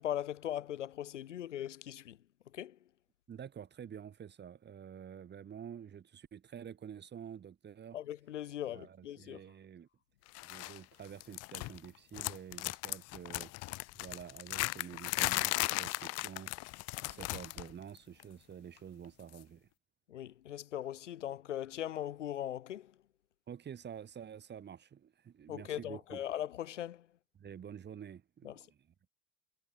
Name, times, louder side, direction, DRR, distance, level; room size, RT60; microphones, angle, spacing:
voice 1, 0.0-2.2 2.5-2.8 7.9-9.4 20.1-23.0 25.5-27.1 28.4-28.7, left 11 dB, 80° left, 0.7 m, -40 dB
voice 2, 3.3-8.0 8.7-9.9 10.4-13.5 14.0-16.5 17.0-19.7 23.5-26.2 27.3-28.8, right 8 dB, 30° right, 1.5 m, -49 dB
sound 1, 10.4-10.8 11.1-11.9 12.1-17.7 18.0-18.2 19.3-19.4, left 21 dB, 45° left, 0.7 m, -36 dB
figure-of-eight pair, 65°, 36 cm